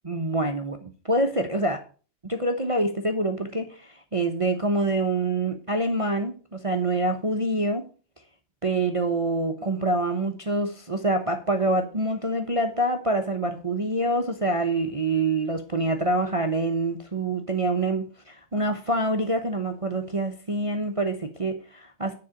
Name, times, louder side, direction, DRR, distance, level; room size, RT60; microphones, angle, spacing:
voice 1, 0.0-1.8 2.2-7.8 8.6-22.1, right 2 dB, 55° right, 5 dB, 0.3 m, -26 dB
9.7 x 4.7 x 6.9 m, 0.38 s
omnidirectional pair, 2.1 m